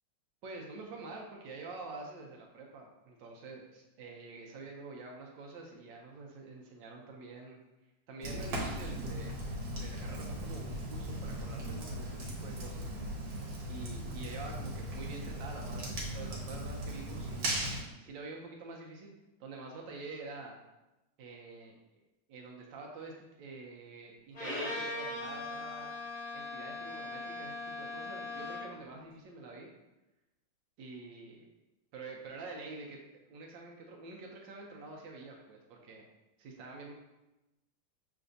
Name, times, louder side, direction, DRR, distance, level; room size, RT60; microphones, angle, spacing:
voice 1, 0.4-7.6 8.1-9.4 9.8-12.9 13.7-17.5 18.0-19.1 19.4-20.6 21.2-21.7 22.3-25.9 26.3-29.7 30.8-31.5 31.9-33.0 33.3-36.0 36.4-36.9, right 3 dB, 90° right, 0 dB, 1.3 m, -47 dB
Fire, 8.2-17.8, right 1 dB, 65° right, 1.6 m, -38 dB
Bowed string instrument, 24.3-28.8, left 2 dB, 50° left, 2.2 m, -40 dB
6.0 x 3.3 x 2.6 m, 0.99 s
omnidirectional pair, 2.0 m